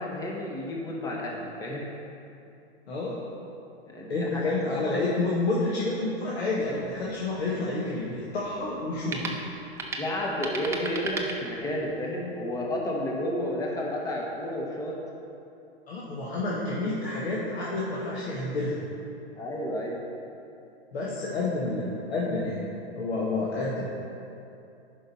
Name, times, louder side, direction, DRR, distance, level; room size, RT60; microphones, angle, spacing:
voice 1, 0.0-1.9 3.9-4.3 4.8-4.9 10.0-15.0 19.3-20.0, left 1 dB, 10° left, -2 dB, 1.2 m, -31 dB
voice 2, 2.9-3.2 4.1-9.3 15.9-18.8 20.9-22.6 22.9-23.9, left 2 dB, 70° left, -6 dB, 1.6 m, -29 dB
sound 1, 6.6-12.0, right 3 dB, 10° right, 0.5 m, -38 dB
10.5 x 5.5 x 4.3 m, 2.7 s
hypercardioid pair, 120°, 33 cm